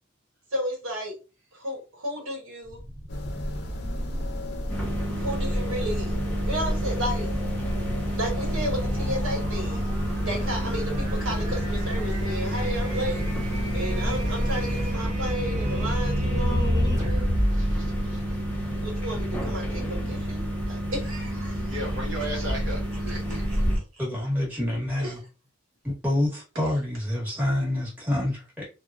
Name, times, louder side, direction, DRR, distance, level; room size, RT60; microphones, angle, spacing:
voice 1, 0.5-1.2 1.5-2.8 5.1-6.1 6.5-7.3 8.1-9.9 10.2-13.2 13.5-17.3 18.6-21.6 22.1-22.2 22.9-23.8 25.0-25.2, equal, 85° right, 1.1 m, -33 dB
sound 1, 2.6-18.9, equal, 35° right, 0.9 m, -32 dB
sound 2, 3.1-15.0, equal, 55° left, 0.6 m, -33 dB
sound 3, 4.7-23.8, equal, 10° left, 0.6 m, -30 dB
voice 2, 17.6-18.2 21.7-22.8 23.0-23.6, right 1 dB, 60° right, 0.8 m, -35 dB
voice 3, 24.0-25.2 25.8-28.7, left 1 dB, 10° right, 1.1 m, -27 dB
2.9 x 2.2 x 2.4 m
head